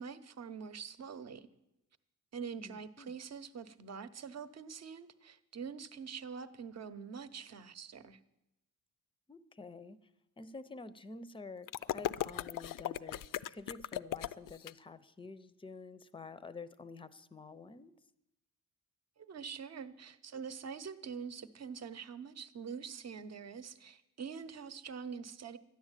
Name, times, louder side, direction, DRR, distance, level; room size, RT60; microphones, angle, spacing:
voice 1, 0.0-1.5 2.3-8.2 19.2-25.6, right 6 dB, 45° right, 12 dB, 0.9 m, -45 dB
voice 2, 2.6-3.2 9.3-10.0 10.4-17.9, left 3 dB, 15° left, 15 dB, 0.6 m, -49 dB
sound 1, 11.7-14.7, left 12 dB, 65° left, 0.5 m, -37 dB
13.0 x 10.5 x 8.9 m, 0.90 s
wide cardioid pair, 155°, 35 cm